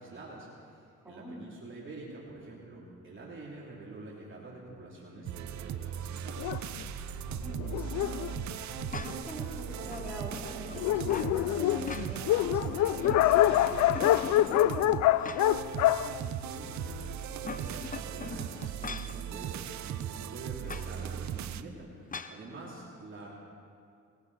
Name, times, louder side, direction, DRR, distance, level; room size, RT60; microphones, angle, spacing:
voice 1, 0.0-6.4 15.9-17.0 17.4-23.3, right 2 dB, 40° right, -4 dB, 3.2 m, -46 dB
voice 2, 1.0-1.4 7.3-8.3 8.9-15.0, right 1 dB, 5° right, -6 dB, 4.2 m, -44 dB
sound 1, 5.3-21.6, right 10 dB, 65° right, 0.7 m, -38 dB
Dog, 6.4-9.4 10.1-10.2 10.5-10.6 10.7-17.1, left 13 dB, 75° left, 0.5 m, -27 dB
sound 2, 8.9-9.4 9.9-11.3 11.7-12.5 12.8-13.6 13.9-15.7 16.1-16.2 17.2-19.2 20.6-20.9 22.1-22.4, left 5 dB, 25° left, 0.8 m, -42 dB
19.5 x 16.0 x 4.2 m, 2.3 s
cardioid pair, 90°, 30 cm